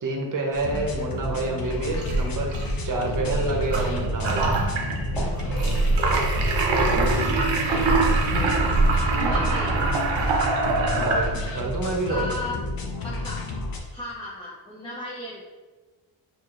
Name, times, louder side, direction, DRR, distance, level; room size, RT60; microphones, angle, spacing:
voice 1, 0.0-2.5 2.8-4.4 10.7-12.3, right 2 dB, 45° right, 1 dB, 0.8 m, -28 dB
sound 1, 0.5-13.8, left 3 dB, 50° left, 0.7 m, -32 dB
sound 2, 1.9-11.7, right 3 dB, 75° right, 0.7 m, -24 dB
sound 3, 2.2-2.4 2.9-3.2 3.7-3.9 4.4-4.6 5.1-5.4 6.1-6.3 6.9-7.1 7.7-7.9 8.5-8.8 9.3-9.5 10.1-10.4 11.0-11.2, equal, 5° right, 1.3 m, -36 dB
voice 2, 6.7-8.6 9.1-10.5 12.1-12.6 13.0-13.4 13.9-15.4, left 1 dB, 10° left, -6 dB, 0.5 m, -36 dB
4.2 x 2.8 x 2.4 m, 1.3 s
cardioid pair, 65°, 46 cm